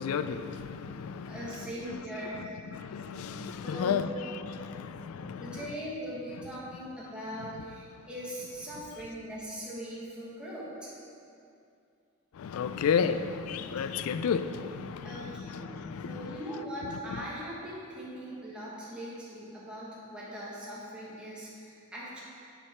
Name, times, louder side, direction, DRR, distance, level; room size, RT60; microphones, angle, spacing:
voice 1, 0.0-1.7 2.7-4.1 4.5-5.5 12.4-16.4, left 6 dB, 80° left, 11 dB, 0.3 m, -32 dB
voice 2, 1.2-2.6 3.6-4.1 5.4-10.9 15.0-15.7 16.0-22.2, equal, 5° right, -8 dB, 1.4 m, -40 dB
7.9 x 4.7 x 4.3 m, 2.5 s
head